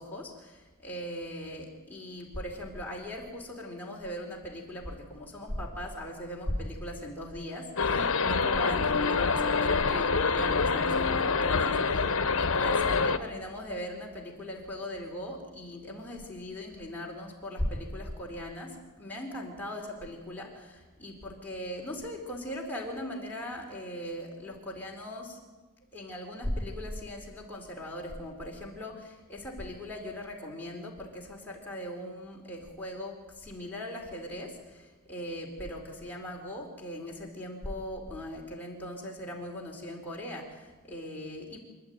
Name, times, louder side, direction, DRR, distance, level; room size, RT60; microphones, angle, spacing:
voice 1, 0.0-25.4 25.9-41.6, equal, 10° left, -2 dB, 4.3 m, -39 dB
sound 1, 7.8-13.2, left 4 dB, 60° left, 1.0 m, -26 dB
26.5 x 12.0 x 9.4 m, 1.2 s
head